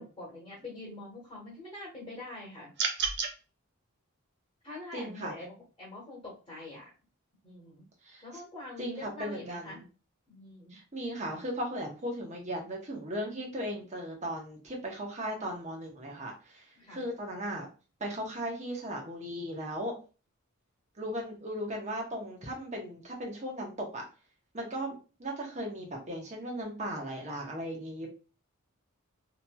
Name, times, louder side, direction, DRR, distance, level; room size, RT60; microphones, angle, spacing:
voice 1, 0.0-2.7 3.0-3.1 4.6-6.9 7.4-7.9 8.2-9.8 10.3-10.8 16.8-17.0, left 2 dB, 25° left, -5 dB, 1.1 m, -44 dB
sound 1, 2.8-3.3, right 6 dB, 55° right, 0.5 m, -30 dB
voice 2, 4.9-5.3 8.0-8.2 8.8-9.8 10.7-16.6 16.9-17.7 18.0-20.0 21.0-24.0 24.5-24.9 25.2-28.1, equal, 35° right, 0 dB, 0.9 m, -37 dB
2.9 x 2.8 x 2.2 m, 0.34 s
head